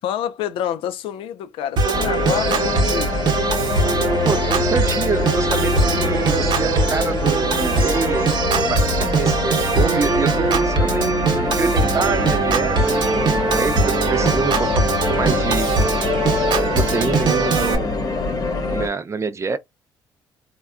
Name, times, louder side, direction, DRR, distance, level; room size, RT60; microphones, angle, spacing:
voice 1, 0.0-3.2, left 9 dB, 80° left, 0.4 m, -27 dB
Organ, 1.8-17.8, right 4 dB, 55° right, 0.9 m, -21 dB
sound 1, 1.9-18.9, left 3 dB, 45° left, 0.9 m, -24 dB
voice 2, 4.2-15.7 16.6-17.9 18.7-19.6, right 4 dB, 30° right, 0.4 m, -26 dB
3.4 x 2.2 x 2.4 m
supercardioid pair, 70°, 9 cm